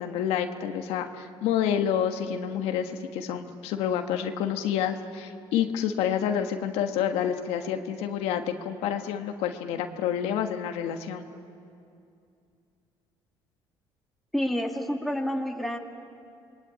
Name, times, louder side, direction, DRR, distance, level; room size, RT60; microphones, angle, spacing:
voice 1, 0.0-11.2, left 9 dB, 85° left, 6 dB, 1.4 m, -28 dB
voice 2, 14.3-15.8, equal, ahead, 2 dB, 2.5 m, -28 dB
27.0 x 20.5 x 8.9 m, 2.5 s
cardioid pair, 90°, 10 cm